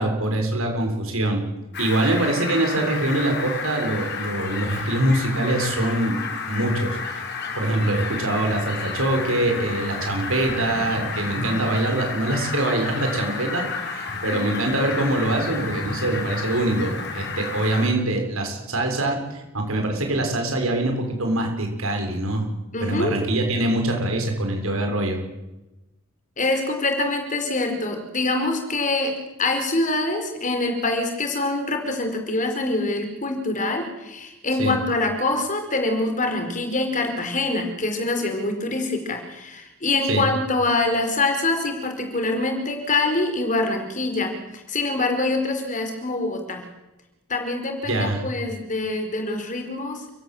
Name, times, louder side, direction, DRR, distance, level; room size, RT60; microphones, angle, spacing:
voice 1, 0.0-1.4 1.8-6.2 6.5-7.2 7.6-22.5 22.8-25.2 34.6-34.7 40.1-40.3 47.9-48.2, right 1 dB, 80° right, 3 dB, 6.9 m, -24 dB
Fowl, 1.7-17.9, left 4 dB, 55° left, 5.5 m, -31 dB
voice 2, 22.7-23.2 26.4-29.1 29.4-46.7 47.3-50.0, left 2 dB, 40° left, 5 dB, 4.7 m, -25 dB
29.5 x 16.5 x 8.0 m, 1.0 s
head